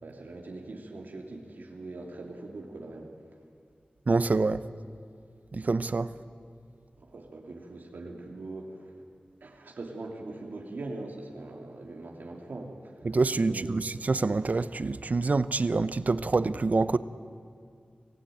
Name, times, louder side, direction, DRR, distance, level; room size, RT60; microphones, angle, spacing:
voice 1, 0.0-3.1 7.0-9.0 9.4-13.7, right 2 dB, 85° right, 1 dB, 2.8 m, -42 dB
voice 2, 4.1-4.6 5.5-6.1 13.0-17.0, right 3 dB, 55° right, 15 dB, 0.8 m, -26 dB
25.0 x 16.0 x 9.3 m, 2.3 s
wide cardioid pair, 55°, 3 cm